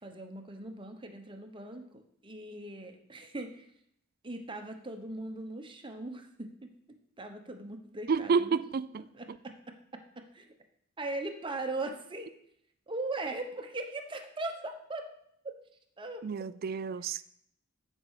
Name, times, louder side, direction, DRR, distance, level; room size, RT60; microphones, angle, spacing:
voice 1, 0.0-3.6 4.2-6.7 7.2-8.6 9.2-10.5 11.0-12.3 12.9-15.1 15.4-15.5 16.0-16.2, right 2 dB, 25° right, 1.0 m, -39 dB
voice 2, 8.1-9.0 16.2-17.2, right 5 dB, 50° right, 0.4 m, -30 dB
14.0 x 5.4 x 4.8 m
head